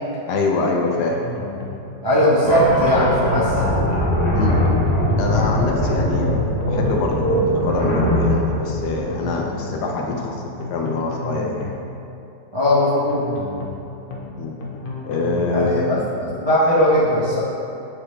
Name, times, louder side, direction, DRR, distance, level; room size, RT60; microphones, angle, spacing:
voice 1, 0.3-1.2 4.3-4.6 5.2-10.4 10.7-11.7 14.4-14.6 15.1-15.9, left 3 dB, 75° left, 1 dB, 1.2 m, -24 dB
sound 1, 0.9-1.8 2.1-2.3 2.6-3.8 4.9-5.8 6.1-6.3 6.6-7.8 8.9-9.8 10.1-10.3 10.6-11.8 12.9-13.8 14.1-14.3 14.6-15.8, left 2 dB, 90° left, 0.4 m, -32 dB
voice 2, 2.0-3.5 12.5-13.2 15.5-17.4, equal, 25° right, -9 dB, 0.7 m, -18 dB
sound 2, 2.4-9.8, equal, 40° left, 1.5 m, -21 dB
7.9 x 3.8 x 3.3 m, 2.7 s
omnidirectional pair, 1.9 m